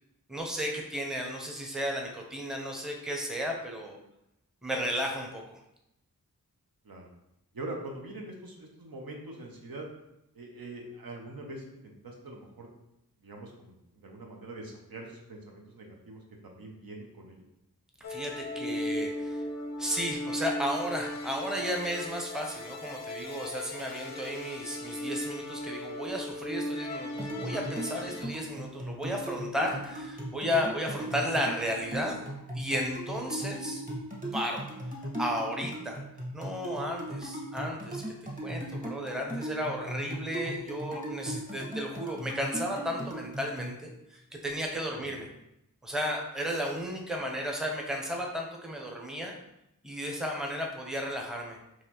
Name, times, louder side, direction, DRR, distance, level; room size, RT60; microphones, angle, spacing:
voice 1, 0.3-4.0 4.6-5.6 18.0-19.4 19.8-32.3 32.5-33.8 34.3-34.6 35.2-36.0 36.3-38.0 38.4-45.3 45.8-49.3 49.8-51.8, equal, ahead, 1 dB, 0.7 m, -34 dB
voice 2, 7.5-9.9 10.3-12.7 13.2-17.4 28.1-28.3 45.0-45.1, right 2 dB, 80° right, 0 dB, 0.7 m, -43 dB
sound 1, 18.0-28.2, left 1 dB, 50° left, 0.4 m, -37 dB
sound 2, 27.2-43.7, right 1 dB, 25° right, 1.2 m, -38 dB
4.0 x 3.0 x 2.9 m, 0.85 s
wide cardioid pair, 55°, 35 cm